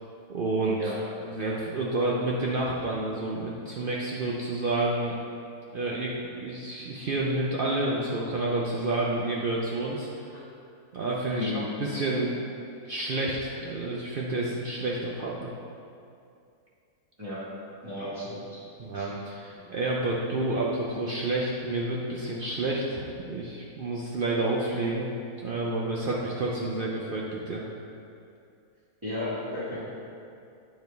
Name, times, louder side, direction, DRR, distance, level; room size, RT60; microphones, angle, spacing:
voice 1, 0.3-0.9 1.2-5.2 5.7-10.1 10.9-12.3 12.9-15.5 18.8-25.1 25.4-27.6, right 2 dB, 60° right, -4 dB, 0.5 m, -29 dB
voice 2, 11.3-11.6 17.2-17.4 17.8-18.4 18.9-19.0 24.3-24.5 29.0-29.8, left 2 dB, 20° right, -14 dB, 1.5 m, -34 dB
8.1 x 4.4 x 3.4 m, 2.5 s
omnidirectional pair, 1.5 m